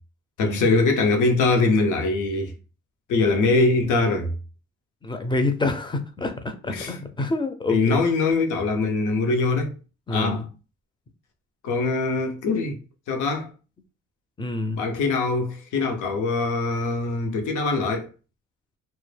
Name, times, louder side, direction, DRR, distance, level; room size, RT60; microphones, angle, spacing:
voice 1, 0.4-2.5 3.1-4.4 6.7-6.9 7.7-9.7 10.1-10.4 11.6-12.8 13.1-13.5 14.7-18.1, left 3 dB, 80° left, 0.7 m, -22 dB
voice 2, 5.0-8.0 10.1-10.5 14.4-14.8, left 2 dB, 15° left, 0.4 m, -27 dB
2.1 x 2.0 x 3.2 m
cardioid pair, 90°, 30 cm